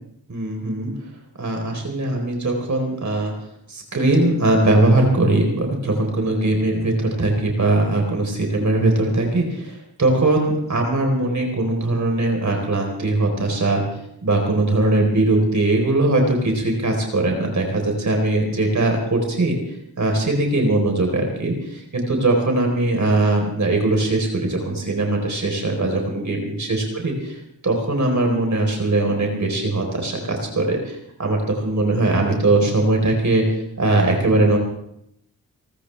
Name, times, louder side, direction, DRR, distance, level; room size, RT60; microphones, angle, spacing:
voice 1, 0.3-0.9 1.4-3.3 3.7-13.8 14.2-19.5 20.0-27.4 27.6-33.4 33.8-34.6, right 2 dB, 50° right, 2 dB, 4.1 m, -20 dB
29.0 x 13.0 x 3.4 m, 0.77 s
cardioid pair, 60°, 37 cm